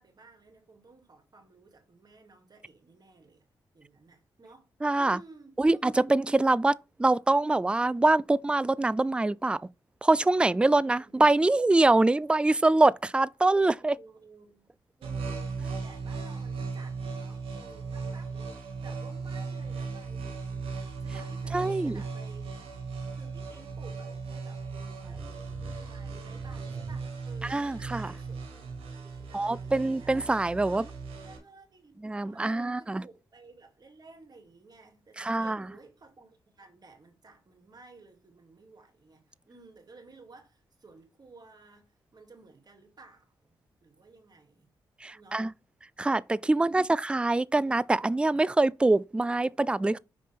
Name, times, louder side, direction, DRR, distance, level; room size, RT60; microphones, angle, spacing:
voice 1, 0.0-3.4 3.7-4.7 5.0-6.1 11.0-11.1 13.9-14.7 15.0-22.5 23.1-30.9 31.2-44.7 45.1-45.4 46.5-46.9, right 3 dB, 45° right, 2.5 m, -55 dB
voice 2, 4.8-5.2 5.6-6.7 7.0-9.6 10.0-14.0 21.5-22.0 27.5-28.1 29.3-30.8 32.0-33.0 35.2-35.6 45.0-45.5 46.0-50.0, right 2 dB, 10° right, 0.3 m, -24 dB
sound 1, 15.0-31.4, right 4 dB, 85° right, 1.4 m, -37 dB
5.6 x 5.1 x 3.5 m
supercardioid pair, 45°, 10 cm